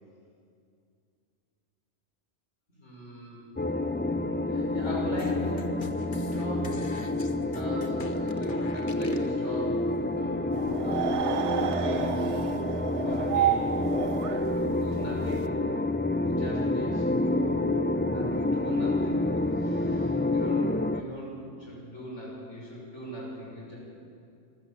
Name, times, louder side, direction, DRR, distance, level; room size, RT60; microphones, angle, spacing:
voice 1, 2.7-3.5 4.5-5.8 6.1-6.9 7.5-9.8 10.1-12.4 12.9-13.7 14.5-15.5 16.2-17.5 18.1-23.8, left 1 dB, 80° left, -4 dB, 6.2 m, -40 dB
sound 1, 3.6-21.0, left 2 dB, 15° left, 0.3 m, -28 dB
sound 2, 5.2-9.3, left 5 dB, 45° left, 1.2 m, -45 dB
sound 3, 10.5-15.4, right 9 dB, 80° right, 1.1 m, -30 dB
26.0 x 14.5 x 7.5 m, 2.5 s
omnidirectional pair, 1.2 m